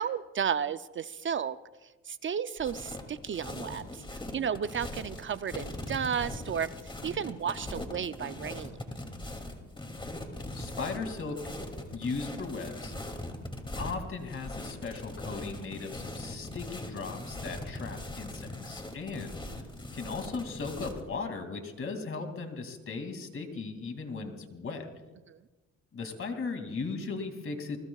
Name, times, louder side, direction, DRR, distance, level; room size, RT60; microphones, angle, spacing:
voice 1, 0.0-8.8 25.3-25.4, right 7 dB, 40° right, 13 dB, 0.5 m, -33 dB
sound 1, 2.6-21.0, left 1 dB, 15° left, 2.6 m, -40 dB
voice 2, 10.5-11.4 11.9-12.9 13.8-19.4 19.9-24.9 25.9-27.8, left 4 dB, 45° left, 5 dB, 2.6 m, -37 dB
28.5 x 20.5 x 2.4 m, 1.1 s
cardioid pair, 90°, 30 cm